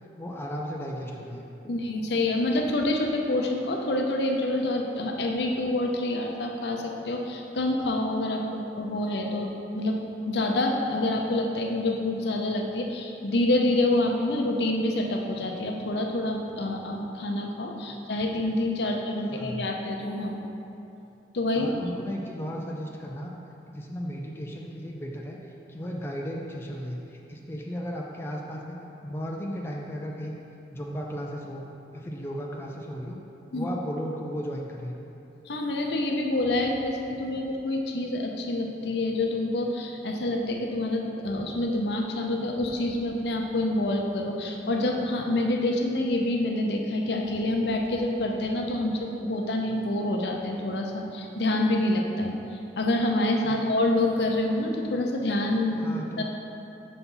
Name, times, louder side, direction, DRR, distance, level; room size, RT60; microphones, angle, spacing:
voice 1, 0.2-1.7 18.8-19.0 19.3-19.7 21.5-23.3 23.7-30.4 30.7-31.7 31.9-33.2 33.5-34.9 53.4-53.7 55.7-56.2, equal, 15° left, -2 dB, 0.5 m, -35 dB
voice 2, 1.7-10.0 10.3-20.4 21.3-21.7 33.5-33.7 35.5-52.4 52.8-56.2, left 1 dB, 70° left, 1 dB, 0.7 m, -27 dB
5.8 x 4.1 x 5.5 m, 2.9 s
head